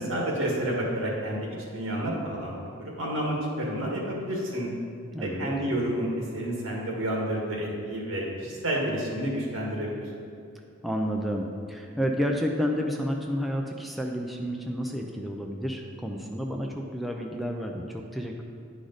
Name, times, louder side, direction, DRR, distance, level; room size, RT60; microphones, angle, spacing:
voice 1, 0.0-1.4 1.7-4.7 5.2-10.1, right 1 dB, 75° right, -2 dB, 1.7 m, -30 dB
voice 2, 5.1-5.5 10.8-18.4, equal, ahead, 0 dB, 0.4 m, -30 dB
9.9 x 4.9 x 4.0 m, 2.3 s
head